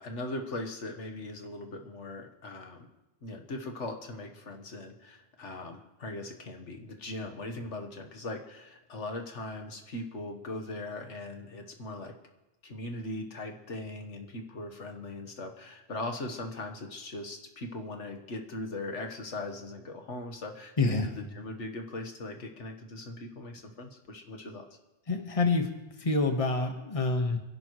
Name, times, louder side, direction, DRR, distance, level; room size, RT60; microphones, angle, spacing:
voice 1, 0.0-2.9 3.2-12.2 12.6-24.7, left 2 dB, 85° left, 4 dB, 1.8 m, -39 dB
voice 2, 25.1-25.7 26.0-27.4, left 3 dB, 30° left, 4 dB, 1.4 m, -27 dB
27.0 x 11.5 x 3.2 m, 1.0 s
omnidirectional pair, 1.2 m